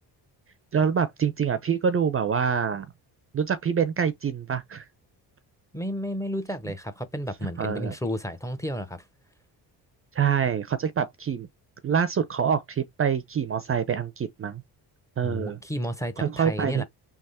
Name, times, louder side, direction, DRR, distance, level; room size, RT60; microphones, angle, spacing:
voice 1, 0.7-2.9 3.3-4.8 7.6-7.9 10.1-11.5 11.8-14.6 15.2-15.6 16.2-16.8, right 7 dB, 35° right, 0.5 m, -26 dB
voice 2, 5.7-9.1 15.2-16.8, equal, 5° left, 0.7 m, -32 dB
3.5 x 2.9 x 4.1 m
cardioid pair, 90°, 41 cm